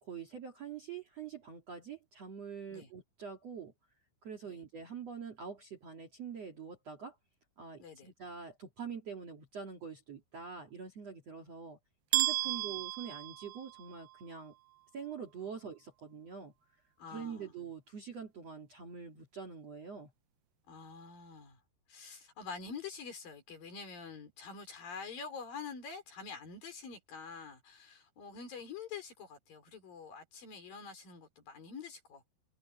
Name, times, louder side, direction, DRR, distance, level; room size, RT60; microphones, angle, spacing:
voice 1, 0.0-3.7 4.2-7.2 7.6-11.8 12.1-14.5 14.9-16.5 17.1-20.1, right 7 dB, 45° right, 2.6 m, -45 dB
voice 2, 7.8-8.1 12.4-12.6 17.0-17.5 20.7-21.6 21.9-32.3, left 5 dB, 50° left, 6.4 m, -46 dB
sound 1, 12.1-14.1, right 18 dB, 75° right, 2.6 m, -33 dB
omnidirectional pair, 5.3 m